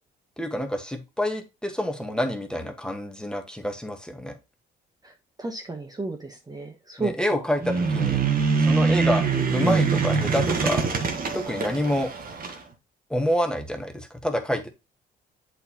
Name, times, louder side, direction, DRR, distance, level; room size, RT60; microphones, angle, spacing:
voice 1, 0.4-4.4 7.0-8.2 8.6-10.8 11.3-12.1 13.1-14.7, left 1 dB, 5° left, 5 dB, 1.4 m, -27 dB
voice 2, 5.4-7.4, right 3 dB, 20° right, 3 dB, 1.1 m, -33 dB
sound 1, 7.6-12.6, right 5 dB, 45° right, 1.5 m, -24 dB
7.9 x 4.5 x 3.0 m, 0.24 s
cardioid pair, 90°, 20 cm